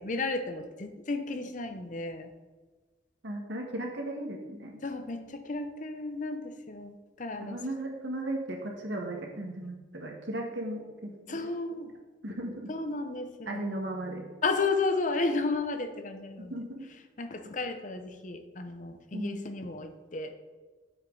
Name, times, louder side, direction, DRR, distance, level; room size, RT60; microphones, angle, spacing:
voice 1, 0.0-2.3 4.8-7.6 11.3-11.9 12.7-13.6 14.4-16.6 17.2-20.3, left 3 dB, 45° left, 7 dB, 0.8 m, -33 dB
voice 2, 3.2-4.8 7.4-11.1 12.2-12.7 13.5-14.3 16.5-16.6 19.1-19.4, right 1 dB, 80° right, 1 dB, 1.6 m, -36 dB
9.5 x 7.3 x 3.9 m, 1.3 s
head